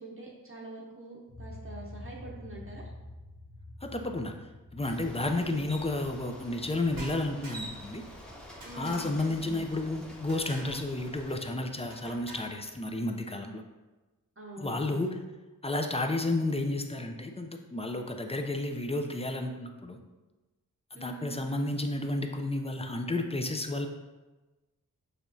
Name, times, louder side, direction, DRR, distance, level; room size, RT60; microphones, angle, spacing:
voice 1, 0.0-2.9 8.6-9.4 14.4-15.1 20.9-21.3, right 2 dB, 40° right, -5 dB, 0.8 m, -45 dB
sound 1, 1.3-13.1, left 1 dB, 75° left, 1.3 m, -50 dB
voice 2, 3.8-4.3 4.7-8.0 8.8-13.6 14.6-15.1 15.6-20.0 20.9-23.9, left 2 dB, 20° left, 4 dB, 0.4 m, -32 dB
Bicycle, 4.8-11.4, equal, 5° left, 0.8 m, -47 dB
sound 2, 6.9-7.9 8.6-9.2 10.3-10.9 11.9-12.6, right 2 dB, 80° right, 1.1 m, -46 dB
6.7 x 3.0 x 2.6 m, 1.2 s
wide cardioid pair, 80°, 35 cm